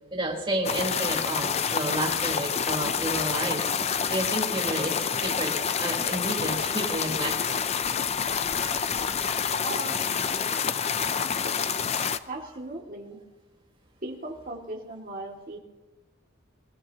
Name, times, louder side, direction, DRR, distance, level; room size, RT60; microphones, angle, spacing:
voice 1, 0.1-7.5, right 1 dB, 25° right, -2 dB, 4.0 m, -31 dB
sound 1, 0.6-12.2, left 7 dB, 30° left, 0.5 m, -28 dB
voice 2, 9.6-10.0 12.3-13.2 14.0-15.6, right 2 dB, 40° right, 0 dB, 2.5 m, -37 dB
25.0 x 16.0 x 3.0 m, 1.2 s
head